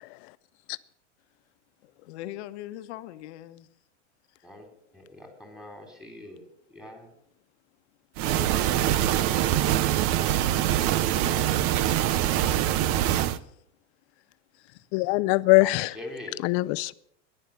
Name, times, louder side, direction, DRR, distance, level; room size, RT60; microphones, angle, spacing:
voice 1, 1.8-3.7 4.3-4.5 13.0-13.6 14.2-14.9, left 14 dB, 65° left, 1.2 m, -43 dB
voice 2, 4.9-7.1 8.2-9.0 11.0-11.7 15.6-16.4, left 1 dB, ahead, 3.6 m, -43 dB
sound 1, 8.2-13.4, right 12 dB, 40° right, 0.7 m, -24 dB
voice 3, 14.9-15.9 16.4-16.9, left 22 dB, 45° left, 0.6 m, -22 dB
15.0 x 11.0 x 7.0 m
supercardioid pair, 135°, 36 cm